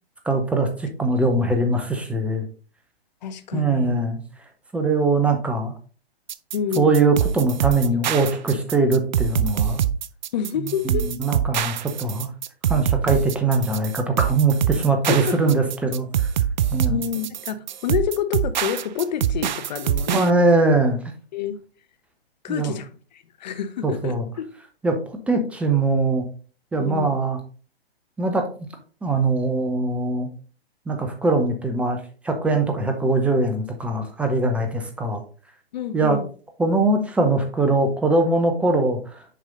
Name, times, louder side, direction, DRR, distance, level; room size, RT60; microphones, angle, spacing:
voice 1, 0.2-2.5 3.5-4.2 4.7-5.7 6.8-9.8 10.8-12.3 12.7-16.1 16.7-17.0 20.1-21.0 22.5-22.7 23.8-24.3 24.8-26.2 26.7-27.4 28.2-28.5 29.0-30.3 30.9-35.2 35.9-36.2 36.6-39.2, right 3 dB, 5° right, 0.6 m, -21 dB
voice 2, 3.2-4.0 6.5-7.0 10.3-11.1 15.0-15.4 16.9-20.5 21.3-21.6 22.4-24.5 26.8-27.2 35.7-36.3, left 8 dB, 45° left, 0.9 m, -28 dB
sound 1, 6.3-20.3, right 9 dB, 50° right, 0.5 m, -24 dB
6.8 x 4.8 x 3.7 m
figure-of-eight pair, 125°, 31 cm